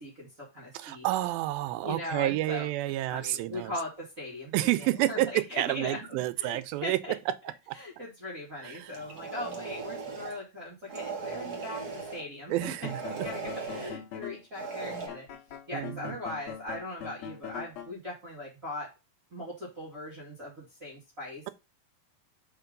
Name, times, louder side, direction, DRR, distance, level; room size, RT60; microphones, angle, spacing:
voice 1, 0.0-1.1 1.8-7.1 7.7-12.5 12.8-13.4 13.7-15.3 15.7-18.9 19.3-21.5, left 1 dB, 25° right, 2.2 m, -40 dB
voice 2, 0.7-3.7 4.5-7.0 7.7-7.8 8.6-9.0 12.5-13.3 15.7-16.1, right 16 dB, 85° right, 2.4 m, -30 dB
sound 1, 8.9-10.4 10.9-12.2 12.8-14.0 14.5-15.1, right 4 dB, 65° right, 0.9 m, -38 dB
sound 2, 12.5-14.4 15.1-17.9, left 8 dB, 70° left, 1.7 m, -42 dB
5.3 x 4.7 x 5.1 m
omnidirectional pair, 4.2 m